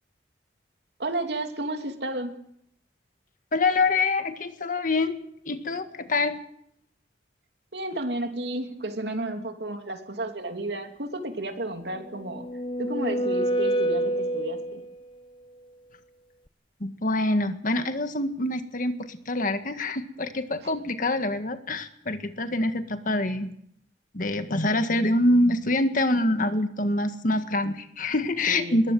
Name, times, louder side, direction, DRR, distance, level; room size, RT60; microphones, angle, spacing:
voice 1, 1.0-2.3 7.7-12.5 12.8-14.8 28.5-28.8, right 2 dB, 70° right, 5 dB, 2.9 m, -32 dB
voice 2, 3.5-5.2 5.5-6.4 16.8-23.5 24.1-28.9, left 2 dB, 50° left, 8 dB, 1.8 m, -25 dB
sound 1, 12.0-15.0, right 1 dB, 30° left, 1.1 m, -27 dB
21.5 x 18.5 x 7.9 m, 0.71 s
head